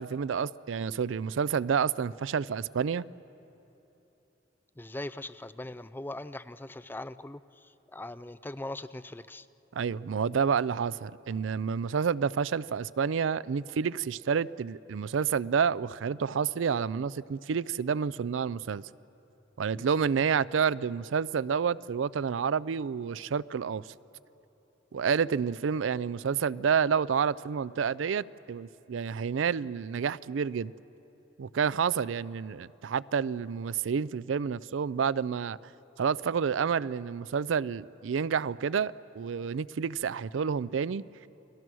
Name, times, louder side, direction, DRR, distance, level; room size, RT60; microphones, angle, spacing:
voice 1, 0.0-3.0 9.7-18.8 19.6-23.9 24.9-30.7 31.4-35.6 36.0-41.0, right 6 dB, 85° right, 0.4 m, -29 dB
voice 2, 4.8-7.4 7.9-9.5, left 1 dB, 10° left, 0.4 m, -40 dB
29.5 x 20.0 x 6.2 m
head